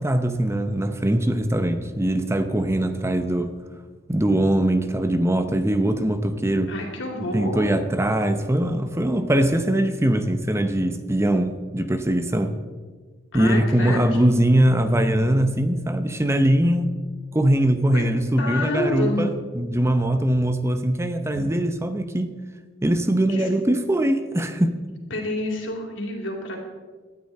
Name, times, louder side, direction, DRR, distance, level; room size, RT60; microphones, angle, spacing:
voice 1, 0.0-3.5 4.1-6.7 7.2-12.6 13.3-16.9 17.3-22.3 22.8-24.8, right 1 dB, 15° right, 9 dB, 0.8 m, -21 dB
voice 2, 6.7-7.7 13.3-14.2 17.9-18.0 18.4-19.3 21.3-21.5 23.3-23.5 25.1-26.6, left 1 dB, 65° left, 1 dB, 3.4 m, -28 dB
18.0 x 12.5 x 4.3 m, 1.4 s
head